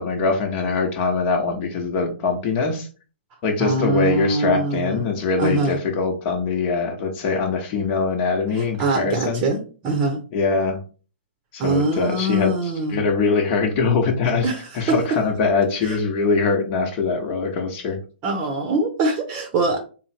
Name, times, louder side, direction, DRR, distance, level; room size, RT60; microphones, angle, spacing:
voice 1, 0.0-2.9 3.4-9.4 10.3-10.8 11.5-18.0, left 4 dB, 35° left, 3 dB, 1.0 m, -22 dB
voice 2, 3.6-5.0 5.4-5.8 8.5-10.2 11.6-13.0 14.4-15.0 15.8-16.0 18.2-19.8, right 2 dB, 30° right, 3 dB, 0.8 m, -23 dB
3.7 x 2.2 x 4.3 m, 0.37 s
figure-of-eight pair, 120°, 6 cm